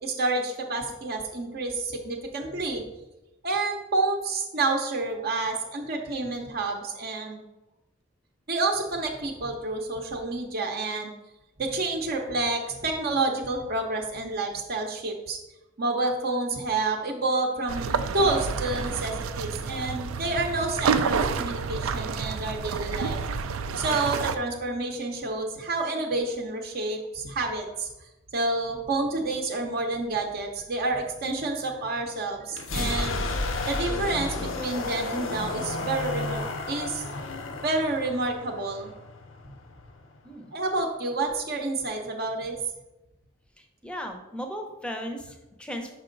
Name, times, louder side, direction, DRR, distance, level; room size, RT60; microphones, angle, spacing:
voice 1, 0.0-2.8 3.4-7.4 8.5-11.1 11.6-15.4 15.8-23.2 23.8-27.9 28.3-33.2 33.7-37.0 37.6-38.9 40.5-42.6, right 2 dB, 50° right, 2 dB, 0.7 m, -29 dB
sound 1, 17.7-24.4, right 5 dB, 80° right, 0.4 m, -29 dB
sound 2, 32.5-40.2, left 2 dB, 65° left, 0.6 m, -32 dB
voice 2, 43.8-45.9, equal, 5° left, 4 dB, 0.6 m, -36 dB
5.9 x 5.2 x 3.9 m, 0.99 s
head